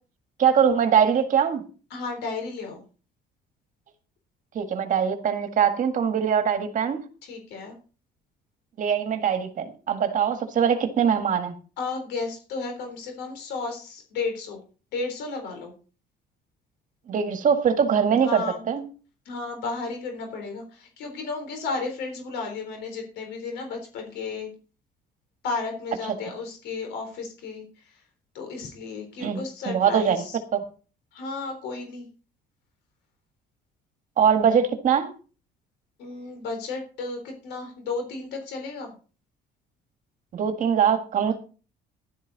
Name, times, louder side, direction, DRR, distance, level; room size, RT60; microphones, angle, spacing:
voice 1, 0.4-1.6 4.6-7.0 8.8-11.6 17.1-18.8 29.2-30.2 30.5-30.6 34.2-35.1 40.3-41.3, right 7 dB, 50° right, 1.8 m, -22 dB
voice 2, 1.9-2.8 7.2-7.8 11.8-14.6 14.9-15.7 18.2-18.6 19.3-24.5 25.4-28.0 28.3-30.4 31.1-32.1 36.0-38.9, left 4 dB, 85° left, 3.9 m, -33 dB
12.0 x 11.5 x 4.1 m
cardioid pair, 110°, 17 cm